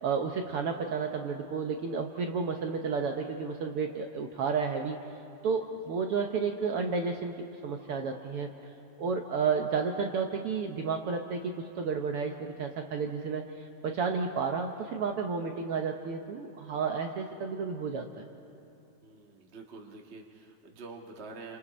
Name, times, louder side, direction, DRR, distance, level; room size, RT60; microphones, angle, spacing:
voice 1, 0.0-5.0 5.4-8.5 9.0-18.3, right 5 dB, 70° right, 3 dB, 1.4 m, -32 dB
voice 2, 19.0-21.6, right 3 dB, 35° right, 1 dB, 1.0 m, -47 dB
29.5 x 27.0 x 4.2 m, 2.7 s
omnidirectional pair, 3.7 m